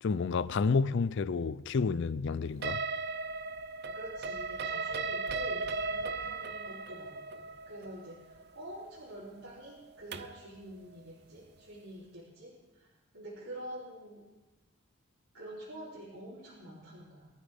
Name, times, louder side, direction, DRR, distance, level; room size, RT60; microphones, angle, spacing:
voice 1, 0.0-2.8, left 4 dB, 55° left, 0.4 m, -30 dB
sound 1, 2.6-10.4, right 4 dB, 50° right, 0.6 m, -37 dB
voice 2, 3.9-12.9 13.1-14.2 15.3-17.3, right 1 dB, 75° right, 3.5 m, -47 dB
22.0 x 13.0 x 3.6 m
head